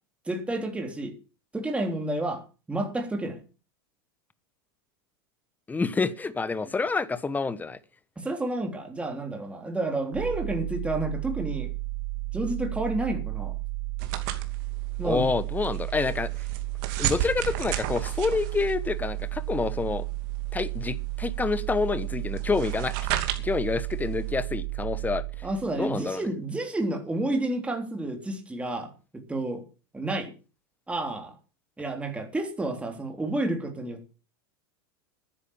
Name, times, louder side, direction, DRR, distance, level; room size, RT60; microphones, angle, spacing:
voice 1, 0.3-1.1 1.5-2.4 2.7-3.4 8.2-11.7 12.3-13.6 15.0-15.2 25.4-29.6 29.9-30.3 30.9-31.3 31.8-34.1, right 2 dB, 10° right, 3.4 m, -30 dB
voice 2, 5.7-7.8 15.0-16.3 17.0-20.1 20.5-22.9 23.4-25.2 25.7-26.2, left 4 dB, 15° left, 1.1 m, -28 dB
sound 1, 10.1-25.9, right 21 dB, 80° right, 0.9 m, -33 dB
sound 2, 14.0-24.3, right 12 dB, 60° right, 2.7 m, -35 dB
11.5 x 10.5 x 7.2 m
supercardioid pair, 125°, 13 cm